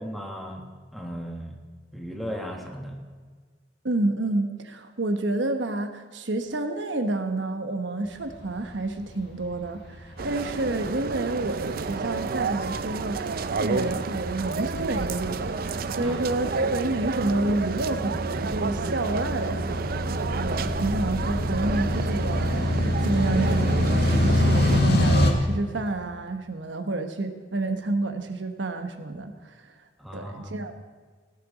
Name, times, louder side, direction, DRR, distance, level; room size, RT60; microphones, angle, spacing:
voice 1, 0.0-0.7 0.9-1.6 1.9-3.0 16.0-16.2 30.0-30.5, equal, ahead, 1 dB, 1.6 m, -36 dB
voice 2, 3.8-22.7 23.0-29.7 30.1-30.7, right 2 dB, 85° right, 7 dB, 1.1 m, -29 dB
sound 1, 8.3-25.3, left 1 dB, 60° left, 1.8 m, -27 dB
sound 2, 10.2-24.8, right 4 dB, 55° right, 0.5 m, -31 dB
17.0 x 11.0 x 4.1 m, 1.5 s
head